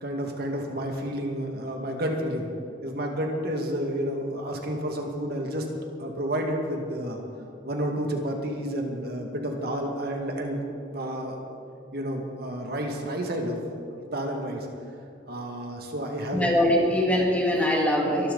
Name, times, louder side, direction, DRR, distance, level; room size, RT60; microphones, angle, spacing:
voice 1, 0.0-2.5 2.8-5.7 6.0-7.2 7.6-10.6 10.9-11.4 11.9-13.6 13.9-14.7 15.3-16.5 16.8-16.9, equal, 60° right, 1 dB, 2.1 m, -30 dB
voice 2, 16.3-18.3, left 1 dB, 10° left, -1 dB, 2.3 m, -22 dB
24.0 x 13.0 x 4.1 m, 2.4 s
head